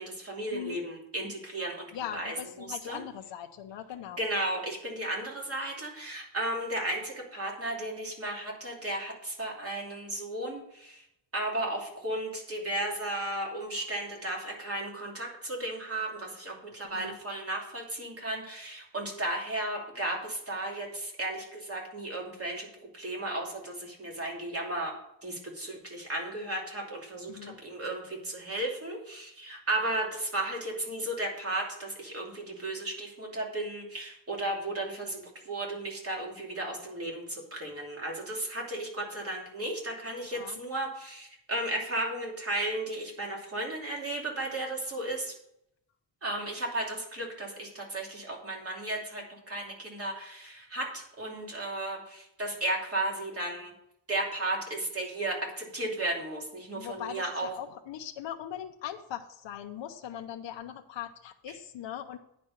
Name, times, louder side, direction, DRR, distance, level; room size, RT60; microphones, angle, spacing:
voice 1, 0.0-3.0 4.2-11.0 11.3-22.7 22.9-24.9 25.2-45.3 46.2-53.7 54.1-57.5, right 1 dB, 30° right, -1 dB, 2.8 m, -34 dB
voice 2, 1.9-4.2 16.9-17.2 27.3-27.6 40.3-40.6 56.7-62.2, left 10 dB, 75° left, 5 dB, 0.8 m, -40 dB
9.7 x 5.3 x 6.6 m, 0.76 s
wide cardioid pair, 135°, 44 cm